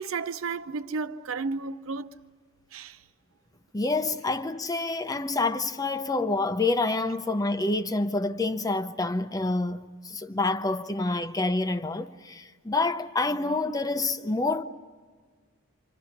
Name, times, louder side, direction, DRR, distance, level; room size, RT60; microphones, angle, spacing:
voice 1, 0.0-2.1 2.7-3.0, right 4 dB, 85° right, 0.7 m, -32 dB
voice 2, 3.7-14.6, left 2 dB, 20° left, 0.7 m, -27 dB
28.5 x 26.0 x 5.8 m
head